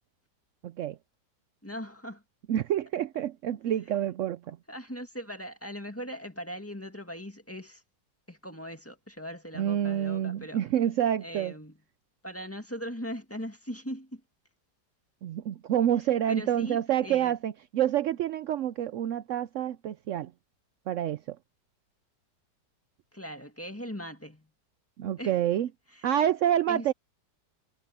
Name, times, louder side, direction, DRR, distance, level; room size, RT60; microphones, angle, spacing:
voice 1, 0.6-1.0 2.5-4.6 9.6-11.5 15.2-20.3 20.9-21.4 25.0-25.7 26.0-26.9, right 11 dB, 80° right, 0.6 m, -28 dB
voice 2, 1.6-2.2 4.7-7.8 8.3-10.6 11.2-11.8 12.2-14.2 16.3-17.3 23.1-24.5 25.2-25.4 26.0-26.1 26.7-26.9, equal, 10° left, 1.8 m, -40 dB
omnidirectional pair, 1.9 m